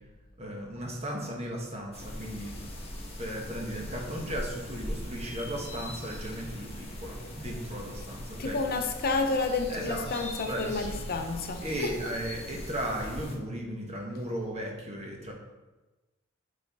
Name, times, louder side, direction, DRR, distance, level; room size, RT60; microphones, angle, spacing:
voice 1, 0.4-2.5 3.2-8.6 9.7-10.1 10.4-11.0 11.6-15.3, equal, 30° right, 0 dB, 1.1 m, -36 dB
sound 1, 1.9-13.4, left 1 dB, 30° left, 1.1 m, -40 dB
voice 2, 8.4-12.1, left 3 dB, 45° left, 5 dB, 0.6 m, -30 dB
6.5 x 4.2 x 4.7 m, 1.1 s
head